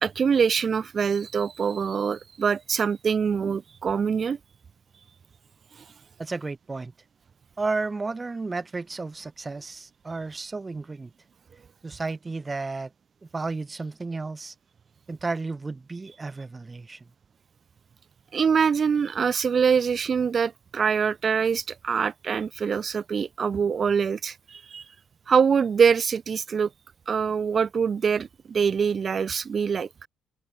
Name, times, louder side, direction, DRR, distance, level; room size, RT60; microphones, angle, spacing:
voice 1, 0.0-4.4 18.3-24.8 25.3-26.7 27.1-30.1, right 6 dB, 50° right, 2.2 m, -24 dB
voice 2, 6.2-6.9 7.6-11.1 11.8-12.9 13.2-14.5 15.1-17.1, right 3 dB, 25° right, 5.4 m, -32 dB
open air
supercardioid pair, 60°, 0 cm